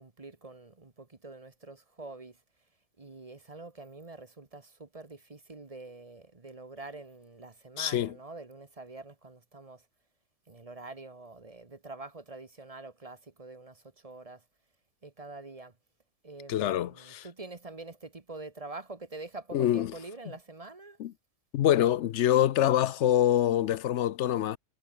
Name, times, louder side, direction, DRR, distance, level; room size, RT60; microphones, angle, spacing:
voice 1, 0.0-2.4 3.0-9.8 10.5-14.4 15.0-15.7 16.2-21.0, right 3 dB, 30° right, 1.3 m, -45 dB
voice 2, 7.8-8.1 16.5-17.3 19.5-19.9 21.0-21.1 21.5-24.6, left 11 dB, 70° left, 0.9 m, -25 dB
omnidirectional pair, 1.3 m